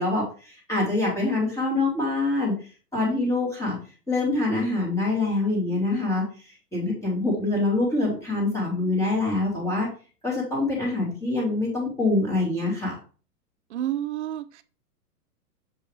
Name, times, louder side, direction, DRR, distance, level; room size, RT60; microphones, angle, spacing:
voice 1, 0.0-2.5 2.9-3.8 4.1-6.2 6.7-9.9 10.2-13.0, left 2 dB, 5° left, 2.4 m, -25 dB
voice 2, 13.7-14.6, right 12 dB, 45° right, 0.5 m, -30 dB
7.0 x 5.4 x 3.3 m
hypercardioid pair, 155°, 48 cm